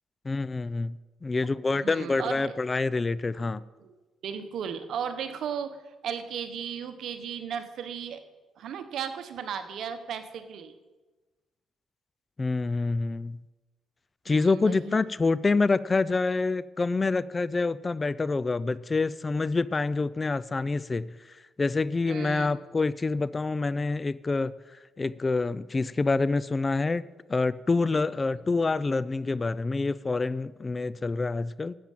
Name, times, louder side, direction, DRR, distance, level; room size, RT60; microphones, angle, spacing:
voice 1, 0.2-3.6 12.4-13.4 14.3-24.5 25.0-27.0 27.3-31.7, left 3 dB, 25° left, 19 dB, 0.4 m, -27 dB
voice 2, 1.8-2.5 3.4-3.5 3.8-3.9 4.2-5.8 6.0-8.2 8.6-10.7 14.3-15.0 22.0-22.5, right 7 dB, 70° right, 9 dB, 1.2 m, -35 dB
12.0 x 8.6 x 7.5 m, 1.2 s
cardioid pair, 90°, 0 cm